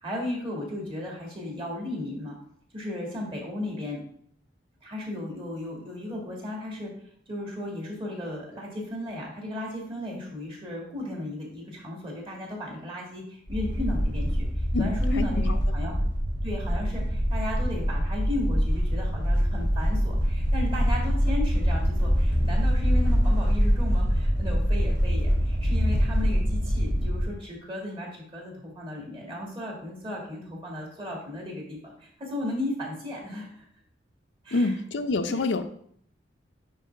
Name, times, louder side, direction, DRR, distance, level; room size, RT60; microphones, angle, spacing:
voice 1, 0.0-2.4 2.7-4.0 4.8-6.9 7.3-14.4 14.8-15.9 16.4-33.6 34.4-34.7 35.3-35.6, left 1 dB, 30° right, -2 dB, 2.0 m, -35 dB
sound 1, 13.5-27.2, equal, 75° right, 2.1 m, -24 dB
voice 2, 14.7-15.6 34.5-35.6, left 3 dB, 85° left, 8 dB, 0.6 m, -27 dB
9.2 x 4.0 x 3.4 m, 0.65 s
head